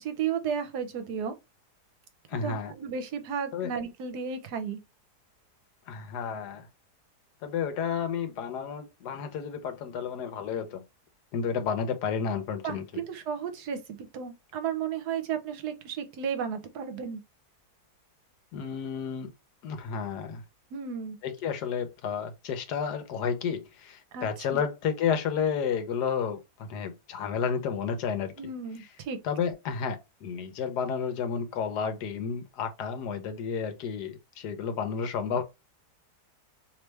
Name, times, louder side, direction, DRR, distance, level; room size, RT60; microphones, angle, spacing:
voice 1, 0.0-1.3 2.3-4.8 12.6-17.2 20.7-21.2 24.1-24.3 24.5-24.6 28.4-29.2, right 7 dB, 75° right, 1.3 m, -33 dB
voice 2, 2.3-2.7 3.5-3.7 5.9-6.7 7.4-10.8 11.3-12.8 18.5-19.3 19.6-20.4 21.2-28.3 28.8-28.9 29.2-35.4, left 6 dB, 80° left, 1.4 m, -31 dB
3.3 x 3.2 x 3.3 m
omnidirectional pair, 1.7 m